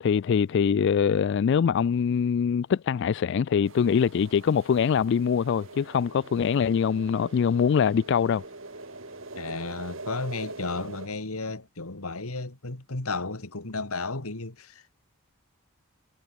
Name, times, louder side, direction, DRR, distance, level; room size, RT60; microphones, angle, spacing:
voice 1, 0.0-8.4, left 7 dB, 55° left, 0.3 m, -23 dB
sound 1, 3.7-11.1, right 2 dB, 60° right, 4.0 m, -43 dB
Bowed string instrument, 5.5-11.7 12.1-12.2, right 1 dB, 30° right, 4.8 m, -57 dB
voice 2, 9.4-15.0, left 3 dB, 85° left, 2.3 m, -33 dB
head